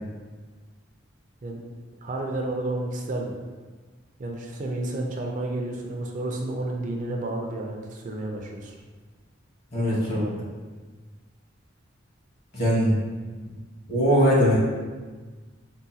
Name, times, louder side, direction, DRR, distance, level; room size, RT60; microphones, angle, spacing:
voice 1, 2.0-3.3 4.2-8.7 9.7-10.4, right 2 dB, 40° right, 1 dB, 0.4 m, -31 dB
voice 2, 9.7-10.2 12.5-12.9 13.9-14.6, equal, 55° left, -6 dB, 1.2 m, -20 dB
3.8 x 2.1 x 2.7 m, 1.4 s
head